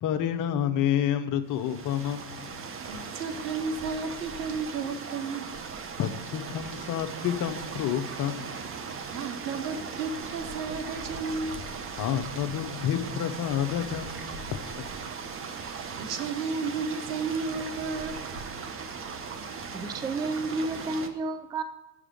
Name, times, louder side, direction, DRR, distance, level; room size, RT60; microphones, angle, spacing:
voice 1, 0.0-2.6 6.0-8.6 12.0-14.6, left 10 dB, 40° left, 9 dB, 0.8 m, -29 dB
sound 1, 1.5-21.1, right 5 dB, 25° right, 0.8 m, -38 dB
voice 2, 2.8-5.5 9.1-11.6 15.8-18.2, right 4 dB, 85° right, 8 dB, 1.0 m, -33 dB
voice 3, 19.7-21.6, right 3 dB, 10° right, 10 dB, 0.4 m, -31 dB
7.1 x 4.9 x 6.4 m, 1.1 s
hypercardioid pair, 80°, 50 cm